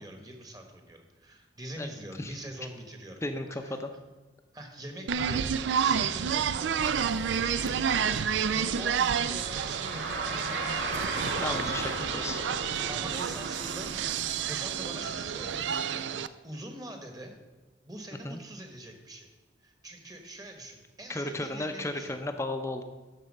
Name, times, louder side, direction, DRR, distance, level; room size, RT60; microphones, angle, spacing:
voice 1, 0.0-3.2 3.5-3.8 4.5-5.5 5.8-8.2 8.5-12.1 12.9-15.9 16.4-17.4 17.8-22.1, right 1 dB, 20° right, 4 dB, 1.3 m, -44 dB
voice 2, 3.2-3.9 11.4-12.4 18.2-18.4 21.1-22.8, left 2 dB, 15° left, 6 dB, 0.6 m, -34 dB
sound 1, 5.1-16.3, right 7 dB, 85° right, 0.4 m, -30 dB
Car, 7.1-15.7, right 2 dB, 65° right, 2.2 m, -38 dB
12.5 x 4.6 x 6.4 m, 1.2 s
head